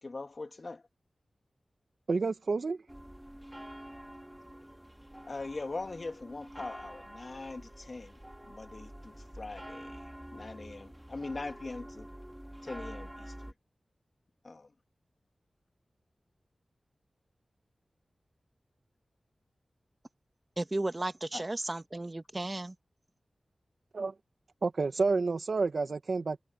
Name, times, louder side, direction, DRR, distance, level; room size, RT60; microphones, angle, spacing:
voice 1, 0.0-0.8 5.3-12.1 12.6-13.5 14.4-14.7 21.3-21.4, left 3 dB, 55° left, 2.5 m, -42 dB
voice 2, 2.1-2.8 23.9-24.1 24.6-26.4, right 4 dB, 70° right, 1.7 m, -29 dB
sound 1, 2.9-13.5, equal, 10° right, 3.9 m, -47 dB
voice 3, 20.6-22.7, right 2 dB, 35° right, 1.6 m, -34 dB
cardioid pair, 50°, 0 cm